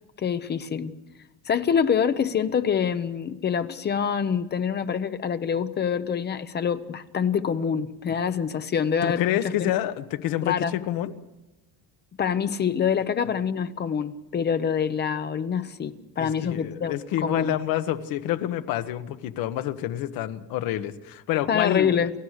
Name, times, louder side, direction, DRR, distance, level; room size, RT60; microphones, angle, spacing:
voice 1, 0.2-0.9 1.5-9.7 10.4-10.7 12.2-16.9 17.2-17.6 21.5-22.1, left 7 dB, 25° left, 11 dB, 0.8 m, -26 dB
voice 2, 9.0-11.1 16.2-22.1, left 12 dB, 65° left, 10 dB, 1.4 m, -28 dB
29.0 x 14.5 x 6.6 m, 1.0 s
cardioid pair, 170°, 37 cm